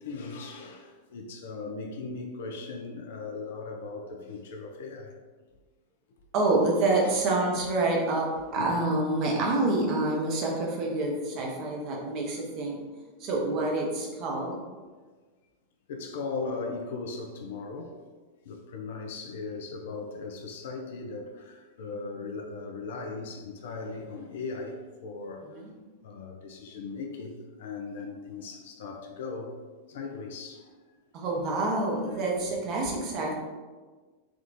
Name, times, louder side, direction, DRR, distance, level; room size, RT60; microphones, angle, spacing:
voice 1, 0.0-5.1 7.0-7.3 8.6-8.9 15.9-18.0 18.5-25.5 26.0-27.3 27.6-29.6 29.9-30.6 33.1-33.2, left 4 dB, 55° left, 3 dB, 0.4 m, -38 dB
voice 2, 6.3-8.3 8.5-12.8 13.2-14.6 25.5-25.7 31.1-33.3, right 2 dB, 40° right, -1 dB, 0.7 m, -27 dB
3.6 x 2.4 x 2.5 m, 1.4 s
figure-of-eight pair, 90°, 0 cm